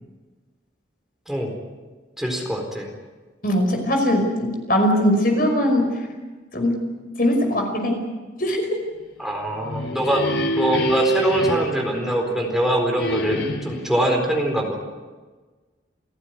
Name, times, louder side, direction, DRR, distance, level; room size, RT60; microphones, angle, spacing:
voice 1, 2.2-2.9 9.2-14.8, equal, ahead, 1 dB, 4.3 m, -23 dB
voice 2, 3.4-6.0 6.5-6.9 7.2-8.1 8.4-8.7, equal, 50° left, 3 dB, 5.4 m, -20 dB
sound 1, 9.4-12.5 13.0-13.9, right 1 dB, 90° left, 3.6 m, -25 dB
28.5 x 15.0 x 9.5 m, 1.3 s
head